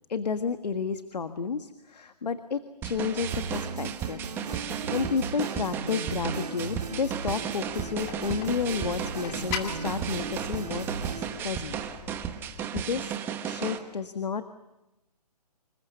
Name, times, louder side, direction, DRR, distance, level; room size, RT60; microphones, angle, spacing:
voice 1, 0.1-4.2 4.9-10.9 11.2-11.8 12.7-13.1 13.4-14.4, left 5 dB, 80° left, 9 dB, 1.7 m, -31 dB
sound 1, 2.8-13.8, right 9 dB, 10° right, 1.1 m, -35 dB
sound 2, 3.2-11.3, right 4 dB, 75° right, 3.4 m, -37 dB
sound 3, 7.7-12.7, left 7 dB, 20° left, 2.5 m, -41 dB
27.0 x 23.0 x 7.0 m, 0.96 s
hypercardioid pair, 160°, 21 cm